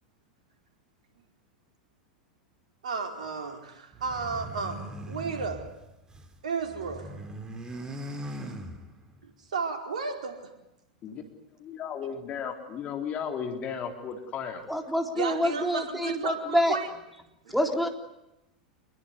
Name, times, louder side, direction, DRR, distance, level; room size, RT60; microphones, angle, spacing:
voice 1, 2.8-5.7 6.4-7.2 8.4-8.5 9.5-10.5 15.2-16.9 17.4-17.6, right 5 dB, 65° right, 4 dB, 4.8 m, -33 dB
sound 1, 3.9-6.4 6.6-9.2, right 1 dB, 15° right, 3.8 m, -40 dB
voice 2, 11.6-14.6, left 7 dB, 30° left, 4 dB, 3.9 m, -35 dB
voice 3, 14.7-16.8 17.5-17.9, equal, ahead, 3 dB, 3.8 m, -26 dB
27.5 x 21.5 x 9.7 m, 0.90 s
figure-of-eight pair, 90°, 4 cm